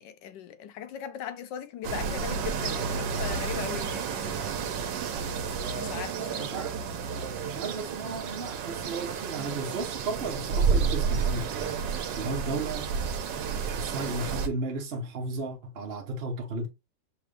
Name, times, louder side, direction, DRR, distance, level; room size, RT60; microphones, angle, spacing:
voice 1, 0.0-4.5 5.7-6.5, left 9 dB, 90° left, 1.3 m, -39 dB
sound 1, 1.8-14.5, right 6 dB, 85° right, 1.3 m, -31 dB
voice 2, 6.4-6.7 7.4-12.9 13.3-16.7, right 3 dB, 50° right, 0.8 m, -34 dB
5.7 x 2.5 x 3.2 m
omnidirectional pair, 1.9 m